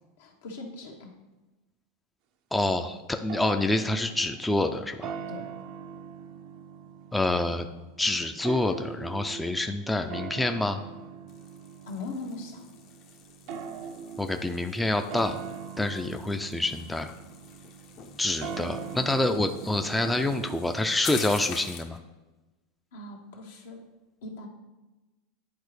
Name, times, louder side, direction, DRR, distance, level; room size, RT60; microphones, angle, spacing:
voice 1, 0.2-1.1 5.3-5.5 11.9-12.7 16.0-16.2 22.9-23.8 24.2-24.5, left 3 dB, 80° left, 1 dB, 1.2 m, -40 dB
voice 2, 2.5-5.1 7.1-7.7 8.0-10.8 14.2-15.4 15.8-17.1 18.2-22.0, left 2 dB, 10° left, 6 dB, 0.4 m, -27 dB
sound 1, 3.3-21.8, right 6 dB, 60° right, 0.5 m, -42 dB
sound 2, 11.3-22.0, left 7 dB, 50° left, 0.8 m, -45 dB
10.0 x 4.0 x 3.2 m, 1.1 s
hypercardioid pair, 100°, 0 cm